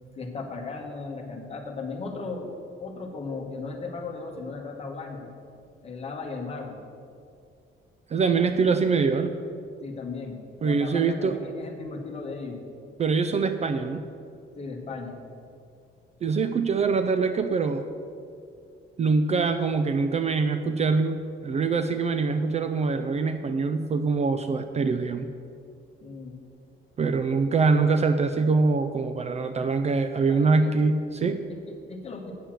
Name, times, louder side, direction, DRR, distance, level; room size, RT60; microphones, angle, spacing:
voice 1, 0.2-2.5 2.8-5.3 5.8-6.8 9.8-12.6 14.6-15.2 26.0-26.4 30.3-30.7 31.5-32.3, left 4 dB, 30° left, 1 dB, 1.2 m, -36 dB
voice 2, 8.1-9.4 10.6-11.4 13.0-14.0 16.2-17.8 19.0-21.2 21.4-25.3 27.0-31.4, right 4 dB, 30° right, 9 dB, 0.3 m, -24 dB
8.8 x 6.9 x 7.4 m, 2.5 s
cardioid pair, 175°, 21 cm